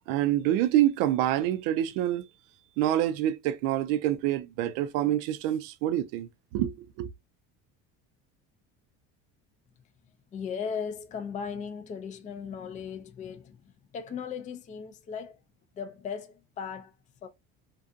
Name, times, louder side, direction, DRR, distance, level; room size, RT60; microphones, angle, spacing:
voice 1, 0.0-2.3 2.8-7.1, right 12 dB, 75° right, 0.5 m, -27 dB
voice 2, 10.3-15.4 15.7-17.0 17.2-17.3, left 6 dB, 20° left, 0.4 m, -37 dB
2.5 x 2.3 x 2.5 m
supercardioid pair, 95°, 35 cm